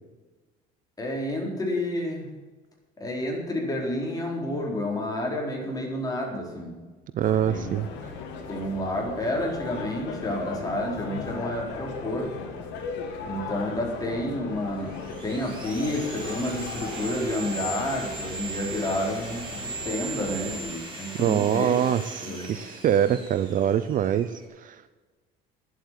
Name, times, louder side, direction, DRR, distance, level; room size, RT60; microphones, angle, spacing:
voice 1, 1.0-2.3 3.0-6.8 7.5-7.7 8.5-12.4 13.2-21.8 22.2-22.5, left 1 dB, 20° left, -1 dB, 4.4 m, -30 dB
voice 2, 7.1-7.9 21.2-25.0, right 10 dB, 45° right, 13 dB, 0.6 m, -24 dB
sound 1, 7.2-20.6, left 5 dB, 70° left, 2.5 m, -38 dB
Sawing, 14.6-24.4, right 3 dB, 25° right, 4.5 m, -39 dB
11.0 x 8.0 x 9.5 m, 1.3 s
cardioid pair, 115°, 19 cm